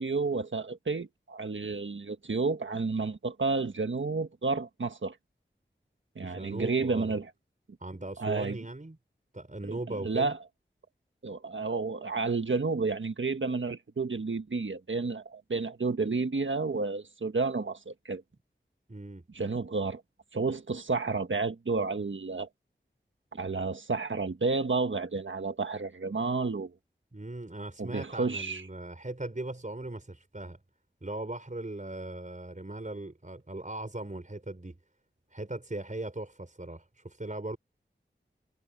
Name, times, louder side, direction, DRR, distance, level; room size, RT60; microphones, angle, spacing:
voice 1, 0.0-5.2 6.1-7.3 8.2-8.6 9.6-10.4 11.2-18.2 19.3-20.0 20.3-22.5 23.3-26.7 27.8-28.6, right 4 dB, 80° right, 1.5 m, -31 dB
voice 2, 6.2-7.2 7.8-9.0 9.3-10.4 18.9-19.2 27.1-30.6 31.0-34.8 35.3-37.6, right 2 dB, 40° right, 5.0 m, -39 dB
wide cardioid pair, 40°, 20 cm